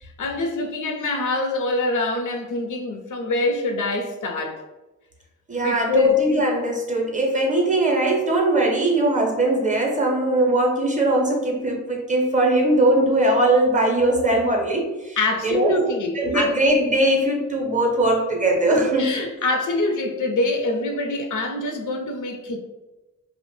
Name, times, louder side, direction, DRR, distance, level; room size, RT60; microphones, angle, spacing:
voice 1, 0.0-4.6 5.6-6.2 15.2-16.5 19.0-22.6, left 2 dB, 75° left, 3 dB, 0.5 m, -25 dB
voice 2, 5.5-15.2 15.4-19.1, right 1 dB, 25° right, 0 dB, 0.5 m, -20 dB
2.8 x 2.0 x 3.0 m, 1.1 s
wide cardioid pair, 135°, 31 cm